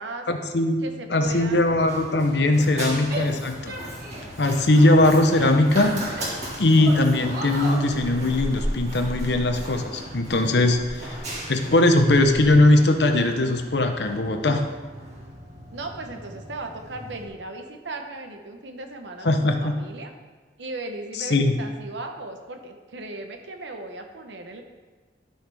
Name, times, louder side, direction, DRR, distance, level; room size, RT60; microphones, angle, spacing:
voice 1, 0.3-0.8 1.1-3.7 4.4-6.0 6.6-14.6 19.2-19.8 21.3-21.5, left 2 dB, 70° left, 6 dB, 0.9 m, -20 dB
voice 2, 0.8-2.0 2.4-3.4 15.7-20.1 20.6-24.6, right 2 dB, 90° right, 5 dB, 1.0 m, -37 dB
Run, 1.2-17.3, right 1 dB, 40° right, 2.2 m, -36 dB
Female speech woman speaking / Yell, 3.1-4.4 4.9-6.4 6.8-7.9, right 1 dB, 55° right, 1.6 m, -36 dB
12.5 x 5.7 x 3.5 m, 1.3 s
head